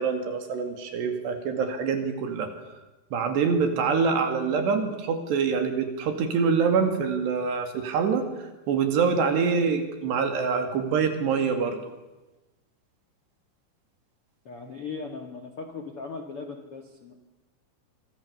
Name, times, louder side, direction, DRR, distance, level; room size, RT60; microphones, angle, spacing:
voice 1, 0.0-2.5 3.1-11.8, right 5 dB, 65° right, 6 dB, 4.3 m, -25 dB
voice 2, 14.4-17.1, left 4 dB, 80° left, 4 dB, 1.2 m, -38 dB
26.5 x 24.0 x 7.0 m, 1.1 s
omnidirectional pair, 5.7 m